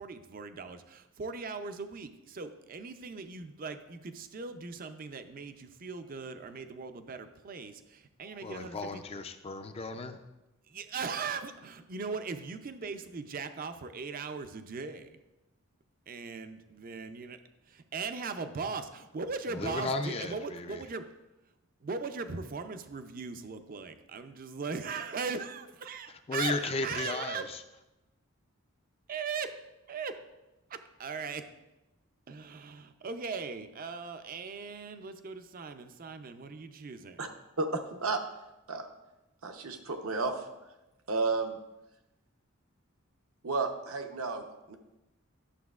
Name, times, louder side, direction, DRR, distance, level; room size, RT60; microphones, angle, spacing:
voice 1, 0.0-9.0 10.7-15.2 16.1-17.4 17.9-21.0 21.8-27.5 29.1-29.6 29.9-30.2 30.7-31.5 32.3-37.2, right 4 dB, 40° right, 0.4 m, -39 dB
voice 2, 8.3-10.2 19.5-20.8 26.3-27.6, left 3 dB, 25° left, 0.4 m, -35 dB
voice 3, 37.6-38.2 38.7-38.9 39.4-40.4 41.1-41.5 43.4-44.8, right 3 dB, 75° right, 0.8 m, -32 dB
11.5 x 6.9 x 2.4 m
head